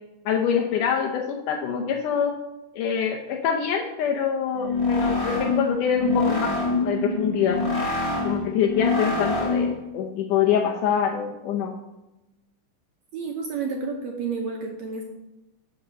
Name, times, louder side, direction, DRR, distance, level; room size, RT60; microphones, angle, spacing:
voice 1, 0.3-2.4 2.7-7.6 8.2-11.7, left 7 dB, 75° left, 1 dB, 2.2 m, -25 dB
sound 1, 4.5-9.8, left 3 dB, 45° left, 0.4 m, -25 dB
voice 2, 13.1-15.0, right 4 dB, 70° right, 1 dB, 1.8 m, -30 dB
10.5 x 3.6 x 7.3 m, 0.97 s
omnidirectional pair, 3.9 m